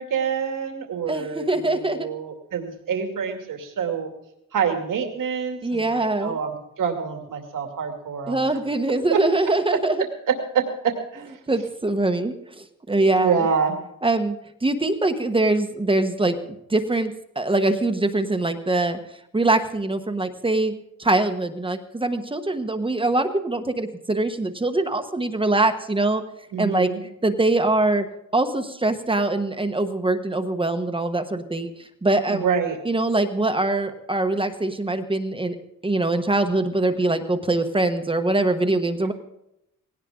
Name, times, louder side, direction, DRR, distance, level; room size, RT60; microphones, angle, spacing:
voice 1, 0.0-4.1 4.5-8.6 9.1-9.2 10.3-11.4 13.1-13.7 26.5-27.0 32.3-32.8, right 6 dB, 75° right, 3 dB, 2.6 m, -26 dB
voice 2, 1.1-2.1 5.6-6.4 8.3-10.0 11.5-13.5 14.0-19.0 19.3-20.7 21.0-26.2 26.6-26.9 27.2-28.1 28.3-31.7 32.0-32.5 32.8-35.6 35.8-39.1, right 2 dB, 15° right, 7 dB, 1.1 m, -23 dB
19.0 x 17.5 x 3.8 m, 0.81 s
wide cardioid pair, 155°, 32 cm